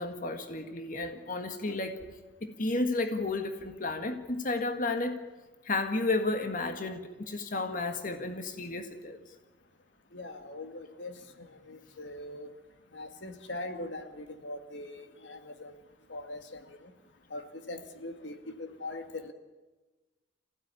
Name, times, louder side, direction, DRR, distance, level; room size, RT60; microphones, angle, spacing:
voice 1, 0.0-2.0 2.4-5.3 5.7-9.2, left 2 dB, 45° left, 6 dB, 1.8 m, -32 dB
voice 2, 10.1-11.1 11.7-12.5 12.9-15.7 16.1-16.4 17.3-17.4 17.7-19.3, left 2 dB, 85° left, 7 dB, 2.1 m, -41 dB
26.0 x 16.5 x 9.9 m, 1.2 s
head